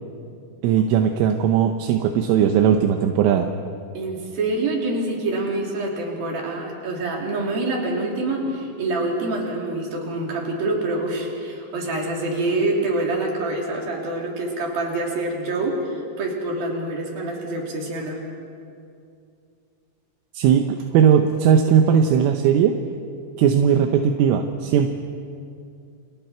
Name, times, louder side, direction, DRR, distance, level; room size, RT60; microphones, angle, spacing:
voice 1, 0.6-3.5 20.4-22.8 23.4-24.9, right 8 dB, 80° right, 4 dB, 3.5 m, -18 dB
voice 2, 3.9-18.2, right 2 dB, 50° right, -2 dB, 5.1 m, -26 dB
30.0 x 29.0 x 4.6 m, 2.4 s
omnidirectional pair, 5.9 m